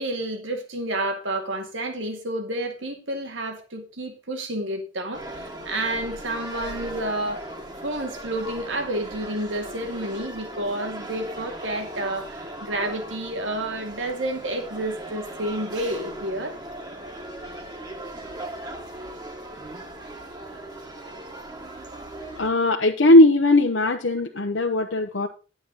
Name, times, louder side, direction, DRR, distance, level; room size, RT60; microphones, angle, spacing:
voice 1, 0.0-7.5 7.8-16.6, right 1 dB, 85° right, 2.1 m, -30 dB
sound 1, 5.1-22.5, right 1 dB, 20° right, 1.2 m, -38 dB
voice 2, 22.4-25.3, left 1 dB, 75° left, 0.9 m, -18 dB
11.5 x 7.8 x 4.0 m
head